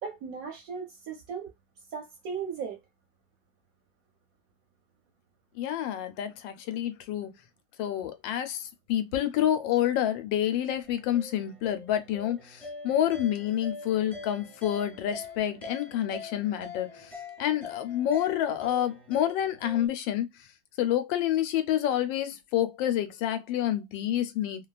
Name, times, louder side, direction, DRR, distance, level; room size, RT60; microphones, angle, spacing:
voice 1, 0.0-1.5 1.9-2.8, right 6 dB, 65° right, 0.9 m, -37 dB
voice 2, 5.5-7.3 7.8-20.3 20.8-24.7, left 11 dB, 85° left, 1.3 m, -28 dB
sound 1, 10.8-19.9, left 3 dB, ahead, 0.5 m, -44 dB
3.0 x 2.3 x 2.3 m
omnidirectional pair, 2.0 m